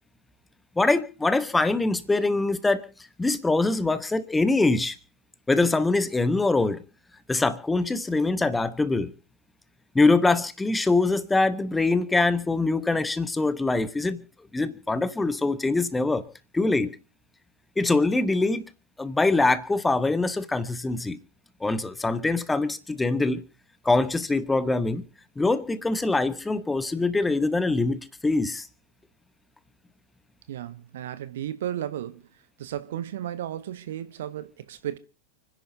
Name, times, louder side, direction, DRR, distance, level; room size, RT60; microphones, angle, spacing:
voice 1, 0.8-2.8 3.2-5.0 5.5-6.8 7.3-9.1 9.9-14.2 14.5-16.2 16.5-16.9 17.8-18.6 19.0-21.2 21.6-23.4 23.8-25.0 25.4-28.7, left 3 dB, 10° left, 1.0 m, -23 dB
voice 2, 30.5-32.2 32.6-35.0, right 11 dB, 60° right, 0.9 m, -34 dB
29.5 x 10.5 x 2.8 m
figure-of-eight pair, 90°, 0 cm